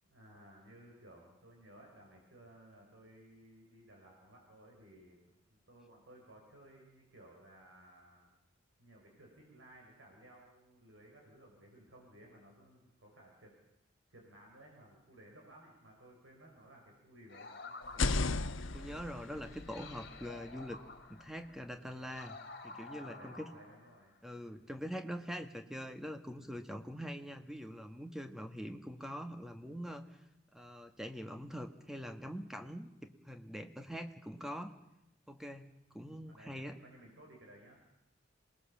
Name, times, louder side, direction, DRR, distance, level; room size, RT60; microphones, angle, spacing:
voice 1, 0.0-5.2 5.5-8.3 8.8-13.5 14.1-18.4 23.0-24.1 36.2-37.8, right 1 dB, 80° right, -1 dB, 5.9 m, -58 dB
sound 1, 17.3-24.2, left 3 dB, 50° left, 2.4 m, -52 dB
sound 2, 17.8-21.7, left 3 dB, 85° left, 1.1 m, -37 dB
voice 2, 18.7-20.8 21.1-22.4 22.6-23.5 24.2-30.2 30.5-34.7 35.3-36.8, equal, ahead, 6 dB, 1.5 m, -44 dB
27.0 x 20.0 x 7.4 m, 0.90 s
head